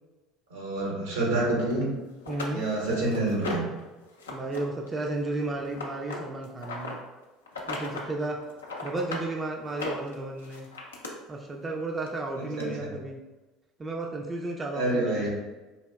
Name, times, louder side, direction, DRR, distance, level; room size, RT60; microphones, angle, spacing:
voice 1, 0.5-1.9 2.5-3.7 12.3-12.9 14.7-15.3, right 2 dB, 80° right, -3 dB, 1.1 m, -28 dB
sound 1, 1.7-1.8 2.3-3.8 4.2-4.6 4.9-7.0 7.5-8.1 8.4-9.3 9.7-11.1 12.1-12.2 12.6-12.7, left 2 dB, 90° left, 0.5 m, -36 dB
voice 2, 2.3-2.7 4.3-7.0 7.7-8.4 8.8-10.7 11.3-13.2 13.8-15.3, right 2 dB, 25° right, 0 dB, 0.4 m, -33 dB
4.0 x 2.7 x 2.3 m, 1.2 s
hypercardioid pair, 70°, 0 cm